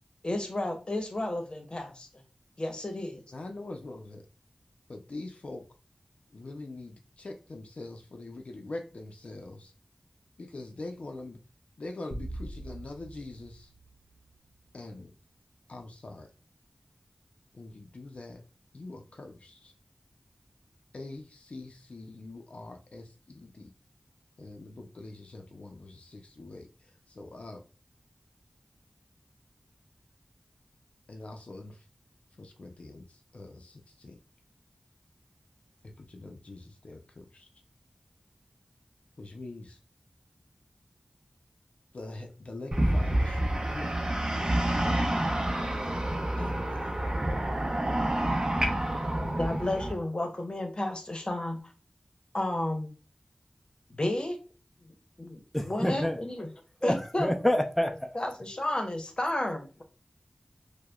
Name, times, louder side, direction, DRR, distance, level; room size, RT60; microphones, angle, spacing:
voice 1, 0.2-2.1 2.6-3.2 49.4-51.6 52.3-52.9 53.9-54.4 54.8-56.5 56.8-57.3 58.1-59.8, left 1 dB, 45° left, 0.8 m, -32 dB
voice 2, 3.3-4.2 4.9-5.6 6.3-9.7 10.4-11.4 11.8-13.7 14.7-15.1 15.7-16.3 17.5-18.4 18.7-19.7 20.9-23.7 24.4-26.7 27.1-27.6 31.1-31.8 32.4-33.0 33.3-34.2 36.0-37.5 39.2-39.8 41.9-43.9 44.3-45.3 46.4-47.0, left 2 dB, 70° left, 0.5 m, -43 dB
sound 1, 12.1-14.6, right 1 dB, 70° right, 0.8 m, -42 dB
sound 2, 42.7-49.9, right 1 dB, 35° right, 0.7 m, -28 dB
voice 3, 55.5-56.2 56.8-58.1, left 1 dB, 5° left, 0.5 m, -27 dB
4.7 x 2.1 x 2.3 m
wide cardioid pair, 50°, 2 cm